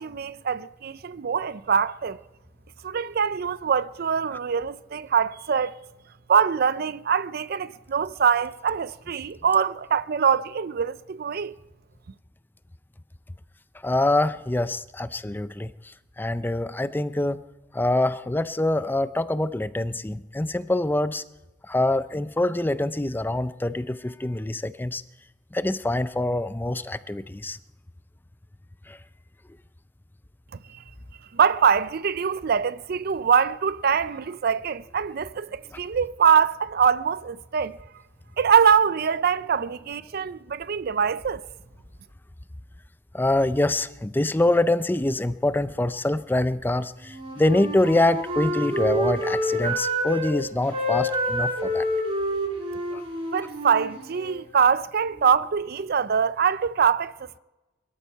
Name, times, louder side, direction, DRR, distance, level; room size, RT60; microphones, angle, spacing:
voice 1, 0.0-2.2 2.8-5.7 6.3-11.5 31.3-37.8 38.4-41.4 53.3-57.1, right 7 dB, 55° right, 0.5 m, -23 dB
voice 2, 13.8-15.7 16.2-17.4 17.7-21.2 21.7-25.0 25.5-27.6 28.9-29.0 43.1-51.8 52.9-53.0, left 1 dB, 10° left, 0.4 m, -25 dB
Wind instrument woodwind instrument, 47.0-50.3 50.6-54.4, equal, 30° right, 6.0 m, -28 dB
23.0 x 13.0 x 4.5 m
head